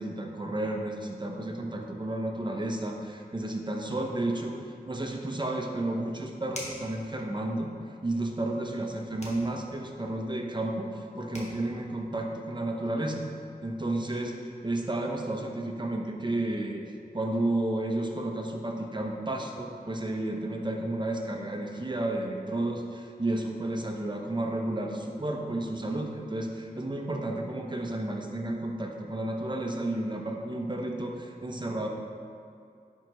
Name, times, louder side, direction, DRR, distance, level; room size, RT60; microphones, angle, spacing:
voice 1, 0.0-4.6 4.9-7.7 8.0-13.2 13.6-16.8 17.1-31.9, right 1 dB, 30° right, 1 dB, 0.8 m, -32 dB
sound 1, 6.5-6.9 9.2-9.5 11.0-11.1 11.3-11.6, left 1 dB, 45° left, 1.4 m, -40 dB
10.0 x 4.6 x 3.1 m, 2.6 s
wide cardioid pair, 65°, 16 cm